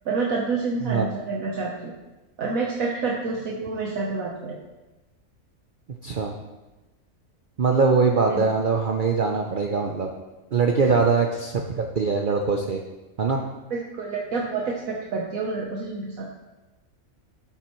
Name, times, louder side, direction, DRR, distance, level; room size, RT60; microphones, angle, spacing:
voice 1, 0.0-1.9 2.4-4.6 8.3-8.4 10.8-10.9 13.7-16.3, right 4 dB, 75° right, -2 dB, 1.4 m, -28 dB
voice 2, 6.0-6.3 7.6-10.1 10.5-12.8 13.2-13.4, right 4 dB, 50° right, 2 dB, 0.7 m, -22 dB
11.5 x 7.6 x 3.1 m, 1.1 s
omnidirectional pair, 1.5 m